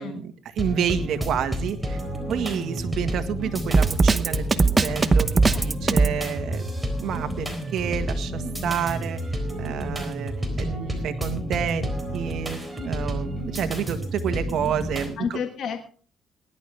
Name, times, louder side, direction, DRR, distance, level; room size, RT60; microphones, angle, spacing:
voice 1, 0.0-2.0 2.3-5.3 5.6-6.6 7.0-12.6 12.8-15.4, right 8 dB, 75° right, 8 dB, 1.6 m, -29 dB
sound 1, 0.6-15.1, equal, 10° right, 3.9 m, -30 dB
Drum kit, 3.7-6.2, right 3 dB, 30° right, 0.9 m, -18 dB
voice 2, 5.5-6.1 15.2-15.9, left 7 dB, 65° left, 6 dB, 1.5 m, -32 dB
19.0 x 11.0 x 3.5 m, 0.40 s
cardioid pair, 90°, 0 cm